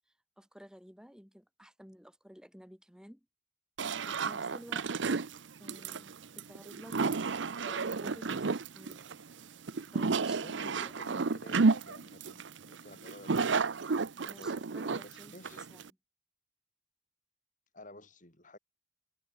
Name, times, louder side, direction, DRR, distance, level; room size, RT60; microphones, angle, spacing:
voice 1, 0.4-3.3 4.1-4.9 5.6-7.0 7.6-9.1 9.9-11.0 14.3-15.8, equal, 5° right, 4.1 m, -53 dB
sound 1, 3.8-15.9, right 4 dB, 70° right, 0.7 m, -32 dB
voice 2, 10.4-13.7 14.1-14.7 15.0-15.6 17.7-18.6, left 1 dB, 40° left, 5.1 m, -52 dB
head